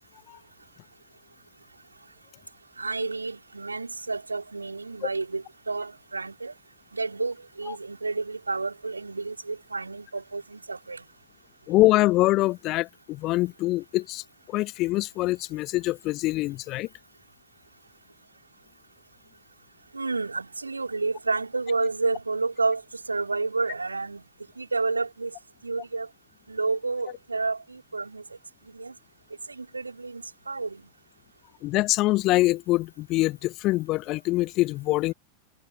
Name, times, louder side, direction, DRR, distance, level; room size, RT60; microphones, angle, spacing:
voice 1, 2.8-6.5 6.9-11.0 19.9-22.8 23.1-24.2 24.6-25.3 25.6-26.1 26.5-28.2 28.7-28.9 29.5-30.8, right 3 dB, 80° right, 4.9 m, -30 dB
voice 2, 11.7-16.9 31.6-35.1, left 19 dB, 40° left, 1.1 m, -24 dB
figure-of-eight pair, 90°, 0 cm